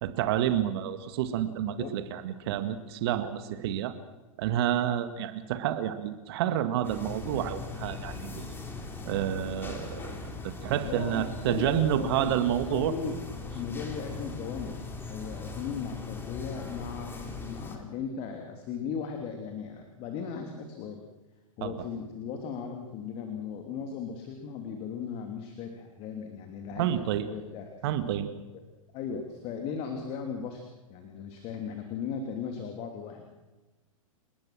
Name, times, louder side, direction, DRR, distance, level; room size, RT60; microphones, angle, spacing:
voice 1, 0.0-3.9 4.4-8.5 9.1-10.1 10.4-12.9 21.6-21.7 26.8-27.3 27.8-28.3, right 11 dB, 45° right, 10 dB, 2.0 m, -29 dB
sound 1, 6.8-17.8, left 4 dB, 10° left, 3.7 m, -39 dB
voice 2, 10.8-13.2 13.5-21.0 21.6-27.7 28.5-28.6 28.9-30.6 30.9-33.2, left 6 dB, 35° left, 4 dB, 3.1 m, -37 dB
30.0 x 19.5 x 6.2 m, 1.1 s
figure-of-eight pair, 105°, 18 cm